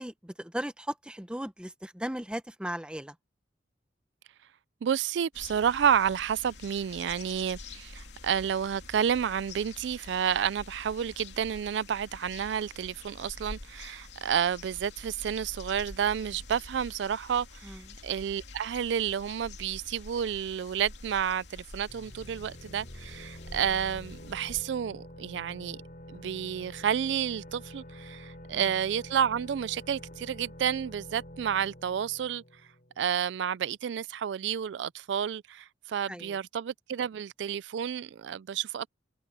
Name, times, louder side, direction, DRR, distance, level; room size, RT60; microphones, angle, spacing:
voice 1, 0.0-3.2 17.6-18.0 28.5-28.7 36.1-36.4, right 1 dB, 5° right, 0.9 m, -37 dB
voice 2, 4.8-25.8 26.1-32.4 33.0-38.9, right 8 dB, 75° right, 0.3 m, -30 dB
sound 1, 5.3-24.6, left 2 dB, 70° left, 2.8 m, -47 dB
sound 2, 21.9-33.4, equal, 50° left, 6.8 m, -48 dB
head